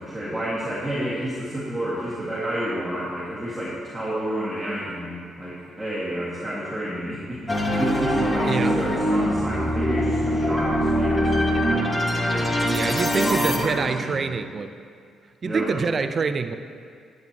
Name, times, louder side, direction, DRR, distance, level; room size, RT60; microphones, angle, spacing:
voice 1, 0.0-11.9 12.3-14.5 15.4-15.8, right 1 dB, 5° right, -10 dB, 2.0 m, -30 dB
sound 1, 7.5-13.6, equal, 20° left, 1.2 m, -23 dB
voice 2, 8.4-8.8 12.7-14.7 15.4-16.6, right 5 dB, 40° right, 10 dB, 0.4 m, -25 dB
10.5 x 8.9 x 2.9 m, 2.2 s
cardioid pair, 90°, 0 cm